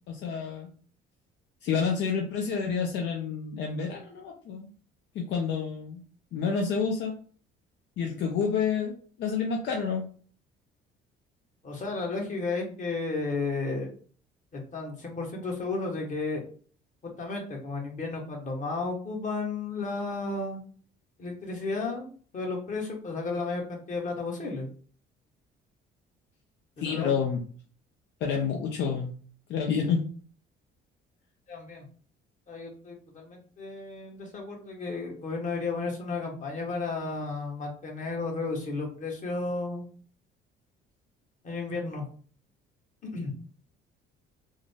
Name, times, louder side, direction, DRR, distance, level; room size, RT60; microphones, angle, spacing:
voice 1, 0.1-0.7 1.6-4.7 5.1-6.0 6.3-7.1 8.0-10.1 26.8-27.4 28.2-29.1 29.5-30.0, left 6 dB, 70° left, 1 dB, 0.6 m, -29 dB
voice 2, 11.6-13.9 14.5-16.4 17.0-20.6 21.2-22.1 22.3-24.7 26.8-27.1 31.5-31.9 32.5-39.8 41.4-42.1 43.0-43.3, left 3 dB, 40° left, 0 dB, 1.3 m, -33 dB
3.6 x 2.1 x 3.5 m, 0.43 s
cardioid pair, 105°, 19 cm